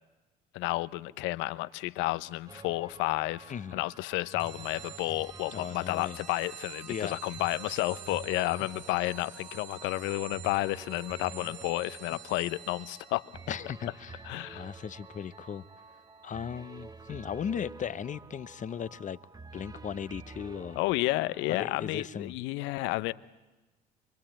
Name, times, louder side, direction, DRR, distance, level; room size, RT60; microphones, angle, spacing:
voice 1, 0.5-13.3 14.2-14.7 20.8-23.1, left 20 dB, 65° left, 16 dB, 1.0 m, -31 dB
sound 1, 2.5-21.9, right 4 dB, 20° right, 1.1 m, -49 dB
voice 2, 3.5-3.8 5.5-6.2 6.9-7.2 11.3-11.8 12.1-12.2 13.5-14.1 14.5-15.7 16.2-19.2 19.5-20.8 21.5-22.3, left 8 dB, 40° left, 16 dB, 1.0 m, -37 dB
sound 2, 4.4-16.5, right 10 dB, 60° right, 3.3 m, -49 dB
25.5 x 23.0 x 9.0 m, 1.1 s
hypercardioid pair, 60°, 20 cm